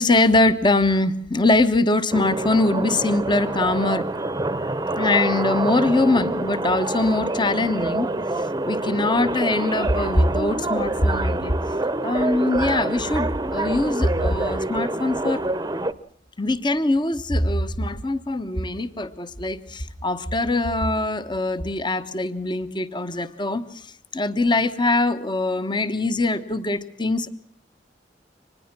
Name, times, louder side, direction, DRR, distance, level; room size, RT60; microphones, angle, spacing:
voice 1, 0.0-4.0 5.0-8.1 8.7-11.5 12.0-15.4 16.4-23.6 24.1-27.3, left 2 dB, 25° left, 12 dB, 1.1 m, -22 dB
sound 1, 2.1-15.9, right 2 dB, 20° right, 0.9 m, -26 dB
25.0 x 20.0 x 6.1 m, 0.62 s
head